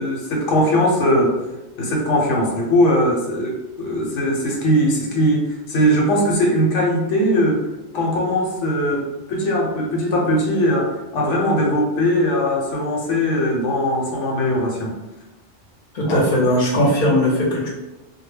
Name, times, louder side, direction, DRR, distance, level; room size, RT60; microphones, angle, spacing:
voice 1, 0.0-1.4 1.8-7.7 7.9-14.9 16.1-16.2, equal, 75° left, -1 dB, 1.0 m, -20 dB
voice 2, 15.9-17.7, left 1 dB, 45° left, -3 dB, 0.8 m, -18 dB
2.1 x 2.1 x 3.2 m, 1.0 s
omnidirectional pair, 1.3 m